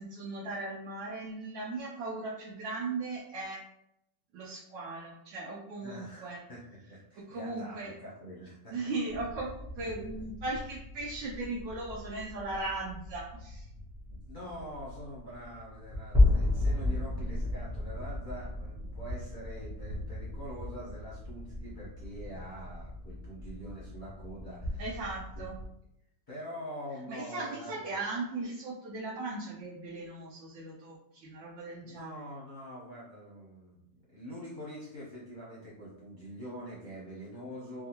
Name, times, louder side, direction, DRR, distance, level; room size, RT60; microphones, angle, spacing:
voice 1, 0.0-3.6 4.3-6.4 7.3-7.9 8.7-13.7 24.8-25.5 27.1-32.2, right 2 dB, 80° right, -5 dB, 1.4 m, -38 dB
voice 2, 5.8-6.6 6.9-8.8 14.1-25.0 25.3-25.5 26.3-28.0 31.8-37.9, equal, 45° left, -7 dB, 0.6 m, -45 dB
sound 1, 9.1-25.6, left 2 dB, 15° right, 0.4 m, -34 dB
3.4 x 2.4 x 2.8 m, 0.80 s
omnidirectional pair, 2.0 m